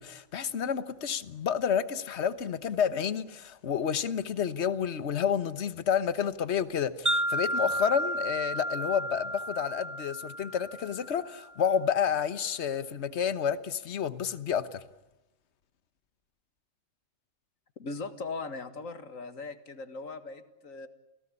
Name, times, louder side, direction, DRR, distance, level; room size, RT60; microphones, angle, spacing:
voice 1, 0.0-14.8, left 8 dB, 60° left, 1.4 m, -30 dB
Wind chime, 7.1-11.3, equal, 15° right, 1.0 m, -32 dB
voice 2, 17.8-20.9, left 3 dB, 85° left, 2.2 m, -39 dB
29.0 x 17.5 x 9.9 m
omnidirectional pair, 1.3 m